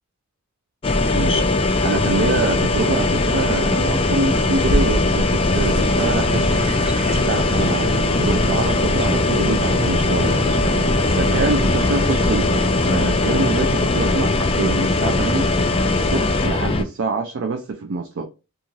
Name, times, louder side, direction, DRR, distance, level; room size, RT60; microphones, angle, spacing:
sound 1, 0.8-16.8, left 2 dB, 25° left, 0.3 m, -19 dB
voice 1, 1.1-1.5 1.8-6.4 7.3-15.5 15.9-18.2, right 4 dB, 60° right, 0.4 m, -25 dB
sound 2, 5.5-13.0, right 1 dB, 30° right, 1.2 m, -29 dB
2.6 x 2.4 x 3.0 m
head